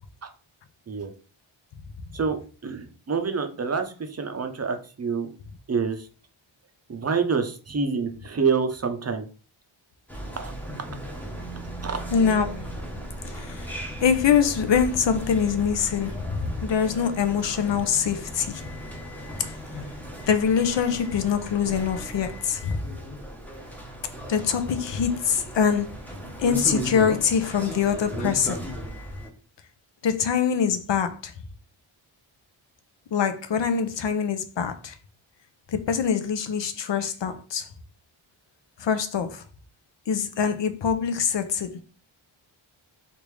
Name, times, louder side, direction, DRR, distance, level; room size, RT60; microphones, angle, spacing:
voice 1, 2.1-5.3 5.7-6.1 6.9-9.2 10.4-10.5 11.8-12.0, right 5 dB, 30° right, 0.6 m, -27 dB
sound 1, 10.1-29.3, equal, 5° left, 0.8 m, -36 dB
voice 2, 12.1-12.6 13.3-18.6 20.3-22.8 24.3-25.9 26.4-28.7 30.0-31.3 33.1-34.9 35.7-37.7 38.8-39.4 40.1-41.8, left 7 dB, 60° left, 0.6 m, -24 dB
3.4 x 2.5 x 3.1 m
wide cardioid pair, 75°, 50 cm